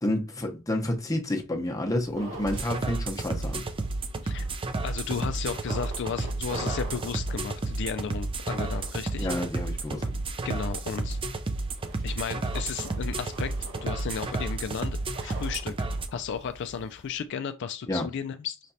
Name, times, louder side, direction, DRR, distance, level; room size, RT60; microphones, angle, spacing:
voice 1, 0.0-3.6 9.2-10.1 17.9-18.1, left 1 dB, 15° left, 0.8 m, -29 dB
sound 1, 1.9-17.2, right 1 dB, 70° right, 2.0 m, -46 dB
sound 2, 2.5-16.1, right 2 dB, 25° right, 0.5 m, -31 dB
voice 2, 4.8-9.3 10.4-11.2 12.0-13.5 13.8-15.0 15.2-15.7 16.1-18.6, left 6 dB, 55° left, 0.4 m, -34 dB
5.8 x 3.2 x 2.7 m
head